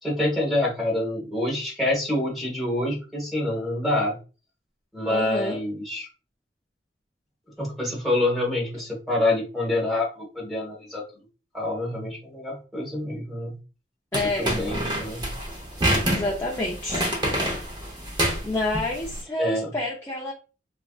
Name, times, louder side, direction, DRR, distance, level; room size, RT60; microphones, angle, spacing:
voice 1, 0.0-4.1 4.9-6.1 7.6-11.0 11.5-13.6 14.4-15.3 19.4-19.7, left 1 dB, ahead, -3 dB, 1.2 m, -26 dB
voice 2, 5.0-5.6 14.1-14.6 16.2-17.1 18.4-20.3, left 2 dB, 15° left, -4 dB, 0.5 m, -28 dB
sound 1, 14.1-19.2, right 1 dB, 25° right, 0.8 m, -27 dB
3.2 x 2.6 x 2.3 m, 0.34 s
head